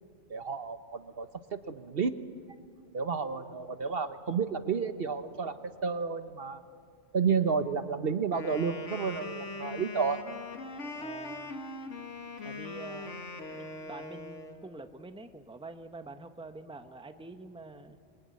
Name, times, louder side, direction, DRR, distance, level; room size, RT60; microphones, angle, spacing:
voice 1, 0.3-2.2 2.9-5.6 5.8-6.6 7.1-10.2, right 5 dB, 55° right, 10 dB, 1.1 m, -31 dB
Wind instrument woodwind instrument, 8.3-14.6, left 2 dB, 90° left, 2.1 m, -41 dB
voice 2, 11.0-11.6 12.4-13.2 13.5-18.0, right 2 dB, 5° right, 8 dB, 1.0 m, -46 dB
26.0 x 22.0 x 9.5 m, 2.1 s
omnidirectional pair, 1.2 m